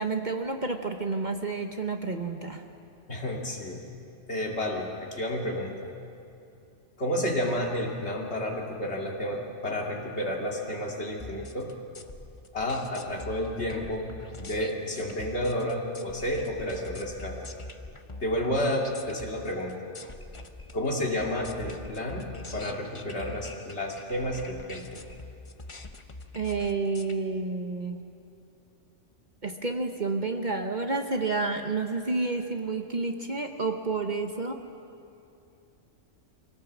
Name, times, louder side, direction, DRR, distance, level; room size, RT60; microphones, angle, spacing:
voice 1, 0.0-2.6 26.3-28.0 29.4-34.6, right 3 dB, 40° right, 5 dB, 1.1 m, -30 dB
voice 2, 3.1-3.9 4.3-5.9 7.0-11.7 12.5-17.5 18.2-19.9 20.7-25.0, left 1 dB, 60° left, -1 dB, 2.9 m, -31 dB
sound 1, 11.2-27.1, left 2 dB, 25° left, 0.9 m, -44 dB
25.5 x 17.5 x 7.3 m, 2.6 s
omnidirectional pair, 1.3 m